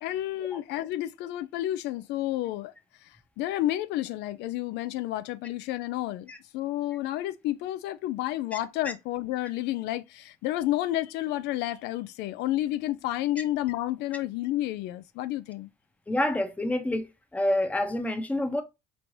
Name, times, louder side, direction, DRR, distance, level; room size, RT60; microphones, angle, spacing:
voice 1, 0.0-2.7 3.0-15.7, left 14 dB, 85° left, 0.4 m, -31 dB
voice 2, 16.1-17.1 17.3-18.6, left 1 dB, 10° left, 0.7 m, -27 dB
4.4 x 3.2 x 2.6 m
cardioid pair, 110°, 17 cm